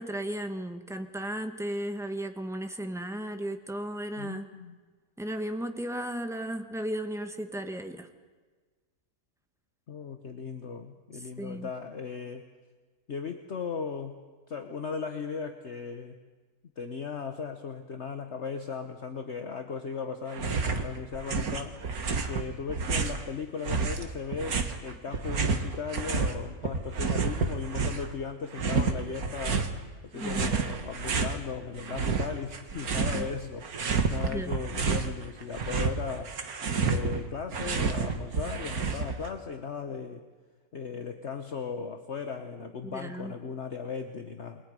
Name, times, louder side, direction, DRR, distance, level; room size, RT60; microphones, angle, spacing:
voice 1, 0.0-4.5 5.2-8.1 11.4-11.7 30.1-30.5 33.0-33.3 34.2-34.6 42.8-43.3, right 1 dB, ahead, 6 dB, 1.4 m, -35 dB
voice 2, 4.2-4.8 9.9-12.4 13.1-14.2 14.5-16.2 16.8-21.8 22.3-29.6 30.0-36.3 36.8-40.2 40.7-44.6, left 5 dB, 50° left, 6 dB, 1.4 m, -37 dB
sound 1, 20.3-20.9 21.1-23.2 23.6-26.3 26.6-28.1 28.5-29.7 30.2-31.4 31.8-33.3 33.6-35.1 35.4-39.3, right 5 dB, 70° right, 2.1 m, -29 dB
28.5 x 22.0 x 5.3 m, 1.4 s
omnidirectional pair, 1.6 m